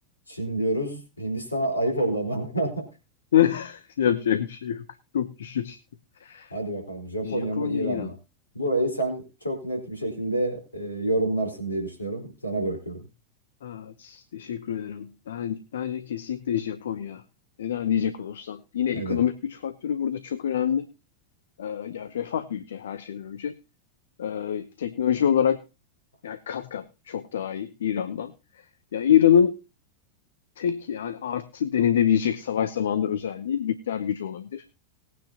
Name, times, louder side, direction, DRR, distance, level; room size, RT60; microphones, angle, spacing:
voice 1, 0.3-2.8 6.5-8.1 8.5-13.0 18.9-19.2, right 1 dB, 80° left, 3 dB, 4.2 m, -28 dB
voice 2, 3.3-4.8 5.1-5.8 6.2-6.5 7.2-8.1 13.6-17.2 17.6-20.9 21.6-23.5 24.2-25.6 26.2-28.3 28.9-29.5 30.6-34.6, left 9 dB, 65° left, 12 dB, 0.8 m, -26 dB
19.5 x 9.3 x 2.9 m, 0.28 s
figure-of-eight pair, 90°, 0 cm